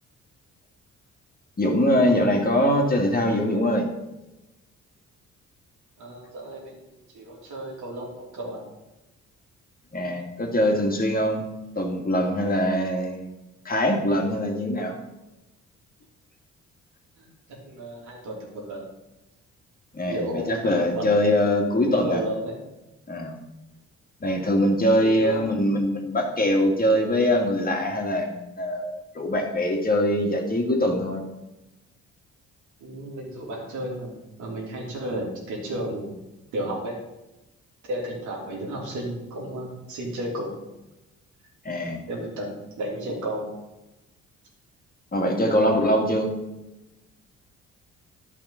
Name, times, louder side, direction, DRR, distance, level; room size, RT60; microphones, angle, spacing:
voice 1, 1.6-3.9 9.9-11.5 11.8-13.3 13.6-15.0 19.9-22.2 23.1-23.4 24.2-31.2 41.6-42.0 45.1-46.3, equal, 30° left, 1 dB, 2.1 m, -23 dB
voice 2, 6.0-8.6 17.2-17.3 17.7-18.9 20.1-21.1 21.8-22.6 24.3-24.6 25.0-25.6 32.8-36.1 36.5-36.9 37.9-40.5 42.1-43.5, right 1 dB, 80° right, -2 dB, 3.0 m, -33 dB
10.5 x 5.4 x 5.7 m, 0.99 s
supercardioid pair, 70°, 30 cm